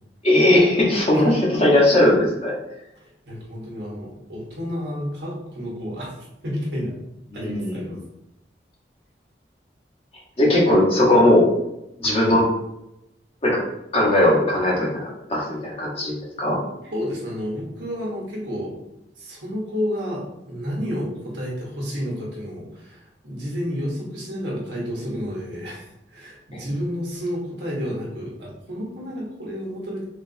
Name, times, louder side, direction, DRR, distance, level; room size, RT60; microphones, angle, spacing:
voice 1, 0.2-2.5 7.3-7.8 10.4-11.5 12.0-12.5 13.4-13.6 13.9-16.6 26.5-26.6, left 1 dB, 35° left, -4 dB, 1.0 m, -18 dB
voice 2, 3.0-6.9 7.3-8.0 16.9-18.8 19.2-30.0, equal, 75° right, -3 dB, 1.1 m, -30 dB
3.7 x 2.4 x 2.6 m, 0.88 s
head